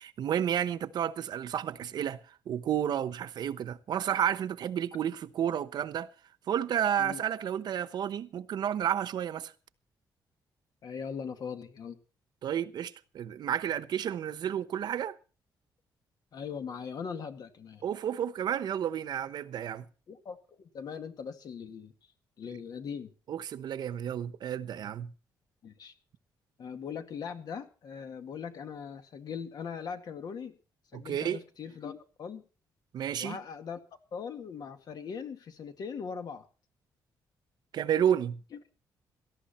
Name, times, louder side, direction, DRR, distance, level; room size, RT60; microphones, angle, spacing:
voice 1, 0.0-2.2 2.5-6.1 6.5-9.5 12.4-15.2 17.8-19.8 23.3-25.1 30.9-31.4 32.9-33.4 37.7-38.4, right 9 dB, 65° right, 1.0 m, -31 dB
voice 2, 10.8-12.0 16.3-17.8 20.1-21.9 22.4-23.1 25.6-25.9 26.6-30.6 30.9-32.4 33.2-33.8 34.1-36.5, left 6 dB, 60° left, 2.1 m, -40 dB
17.5 x 14.0 x 4.3 m
cardioid pair, 125°, 8 cm